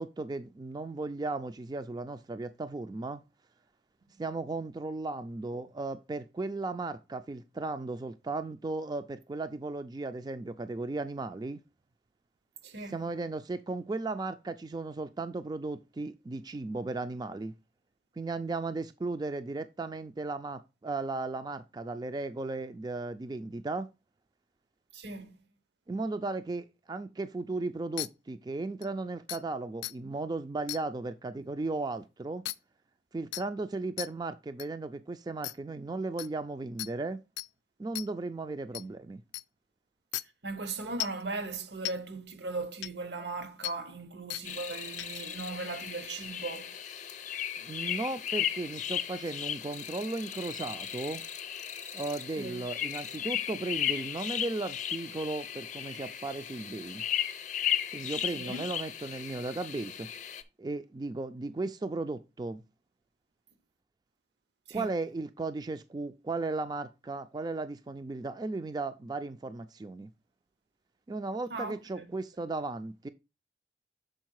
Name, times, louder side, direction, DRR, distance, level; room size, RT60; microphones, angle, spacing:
voice 1, 0.0-3.2 4.2-11.6 12.9-17.5 18.2-23.9 25.9-32.4 33.1-37.2 37.8-39.2 47.6-51.2 51.9-57.0 57.9-60.1 60.6-62.6 64.7-70.1 71.1-73.1, right 3 dB, 25° right, 0.3 m, -36 dB
voice 2, 12.6-13.1 24.9-25.4 38.8-38.9 40.4-46.8 52.4-52.6 58.3-58.6 64.7-65.0 71.5-72.1, right 3 dB, 75° right, 1.0 m, -38 dB
sound 1, 28.0-28.1 28.8-28.9 29.3-29.4 29.8-29.9 30.7-30.8 32.5-32.6 33.3-33.4 34.0-34.1 34.6-34.7 35.4-35.5 36.2-36.3 36.8-36.9 37.4-37.5 38.0-38.1 38.7-38.8 39.3-39.4 40.1-40.2 41.0-41.2 41.9-42.0 42.8-42.9 43.6-43.7 44.3-44.4 45.0-45.2, left 16 dB, 80° left, 0.4 m, -35 dB
sound 2, 44.4-60.4, left 10 dB, 45° left, 0.6 m, -36 dB
6.4 x 4.5 x 4.6 m
head